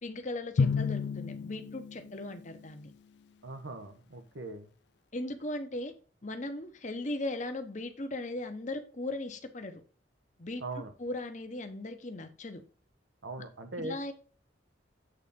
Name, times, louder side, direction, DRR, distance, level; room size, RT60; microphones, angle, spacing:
voice 1, 0.0-2.9 5.1-5.9 6.2-9.8 10.4-10.6 11.0-12.6 13.8-14.1, left 2 dB, 40° left, 7 dB, 1.0 m, -38 dB
Drum, 0.6-2.8, left 5 dB, 60° left, 0.3 m, -31 dB
voice 2, 3.4-4.7 10.6-10.9 13.2-14.1, right 2 dB, 75° right, 8 dB, 1.1 m, -40 dB
8.2 x 4.1 x 5.2 m, 0.39 s
head